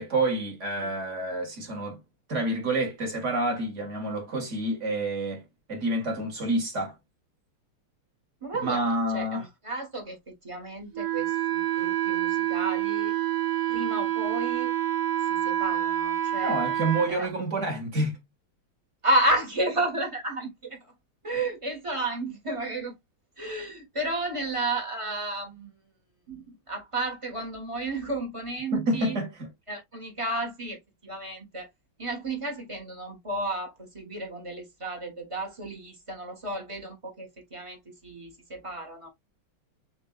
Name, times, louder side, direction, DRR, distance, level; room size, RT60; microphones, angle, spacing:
voice 1, 0.0-2.0 2.3-5.4 5.7-7.0 8.6-9.4 16.4-18.2 28.7-29.5, right 2 dB, 35° right, 1.8 m, -28 dB
voice 2, 8.4-8.9 9.1-10.2 10.4-13.1 13.7-14.7 15.2-16.5 17.1-17.3 19.0-20.8 21.2-22.9 23.4-25.7 26.3-29.2 29.7-31.7 32.0-39.1, right 2 dB, 20° right, 1.1 m, -32 dB
Wind instrument woodwind instrument, 10.9-17.1, right 12 dB, 55° right, 1.3 m, -27 dB
7.4 x 2.7 x 2.3 m
omnidirectional pair, 2.3 m